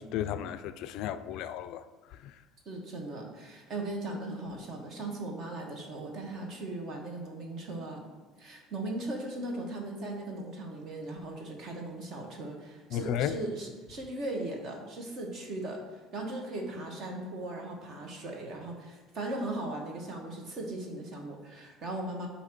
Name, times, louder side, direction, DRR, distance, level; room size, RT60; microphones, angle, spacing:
voice 1, 0.0-1.9 2.2-2.3 12.9-13.4, left 11 dB, 60° left, 0.3 m, -34 dB
voice 2, 2.6-8.0 8.4-22.3, right 2 dB, 45° right, 1.3 m, -38 dB
8.2 x 2.8 x 6.0 m
cardioid pair, 150°, 0 cm